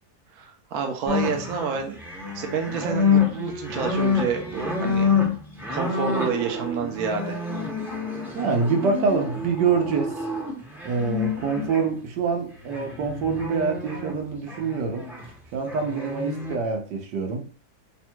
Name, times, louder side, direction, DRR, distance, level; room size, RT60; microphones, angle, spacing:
voice 1, 0.3-2.0 2.3-5.1 5.7-7.4, right 6 dB, 65° right, 1.1 m, -28 dB
sound 1, 1.1-11.8 12.7-14.2 14.5-15.3 15.7-16.5, left 5 dB, ahead, 0.5 m, -28 dB
voice 2, 8.3-10.2 10.8-15.1 15.5-17.4, right 5 dB, 85° right, 1.4 m, -25 dB
3.4 x 2.2 x 4.4 m
omnidirectional pair, 1.8 m